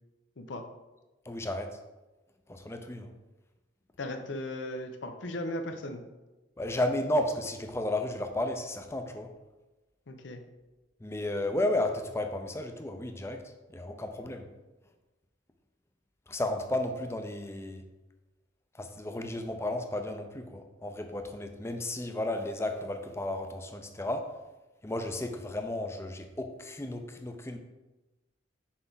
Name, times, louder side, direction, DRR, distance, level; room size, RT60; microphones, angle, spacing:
voice 1, 1.3-1.8 2.5-3.1 6.6-9.3 11.0-13.4 13.7-14.5 16.3-17.8 18.8-24.3 24.8-27.6, left 1 dB, 15° left, 6 dB, 0.5 m, -33 dB
voice 2, 4.0-6.0 10.1-10.4, left 1 dB, 85° left, 6 dB, 0.7 m, -37 dB
6.0 x 4.6 x 3.9 m, 1.1 s
head